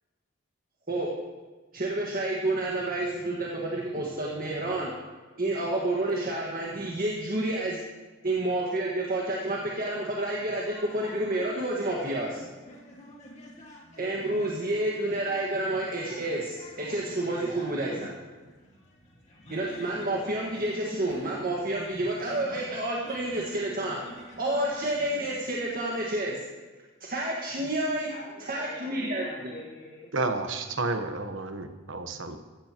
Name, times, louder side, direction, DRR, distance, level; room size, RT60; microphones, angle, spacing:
voice 1, 1.7-4.9 5.4-7.8 8.2-12.4 14.0-18.1 19.5-24.0 24.4-26.4 27.0-28.1 28.5-29.2, right 1 dB, 45° right, -2 dB, 1.6 m, -29 dB
sound 1, 10.7-25.3, equal, 35° left, 2.1 m, -49 dB
voice 2, 28.1-30.1, left 1 dB, 90° left, -9 dB, 4.5 m, -45 dB
voice 3, 30.1-32.4, right 3 dB, 65° right, 7 dB, 1.1 m, -31 dB
15.5 x 14.5 x 3.0 m, 1.3 s
head